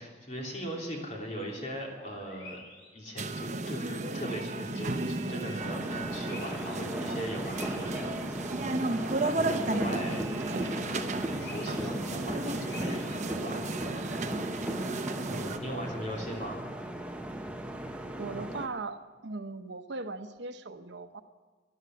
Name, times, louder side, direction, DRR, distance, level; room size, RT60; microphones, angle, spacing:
voice 1, 0.0-2.6 2.9-8.6 9.0-11.1 11.4-14.1 15.2-16.6, equal, 40° left, -1 dB, 3.1 m, -39 dB
sound 1, 1.3-6.8 7.0-9.6 9.9-11.9 12.2-14.0, left 1 dB, 60° left, 3.8 m, -52 dB
sound 2, 3.2-15.6, right 2 dB, 40° right, 0.9 m, -33 dB
sound 3, 5.6-18.7, right 1 dB, 5° right, 0.9 m, -38 dB
voice 2, 15.4-16.4 18.1-21.2, right 3 dB, 75° right, 9 dB, 0.9 m, -40 dB
13.5 x 11.0 x 9.3 m, 1.3 s
head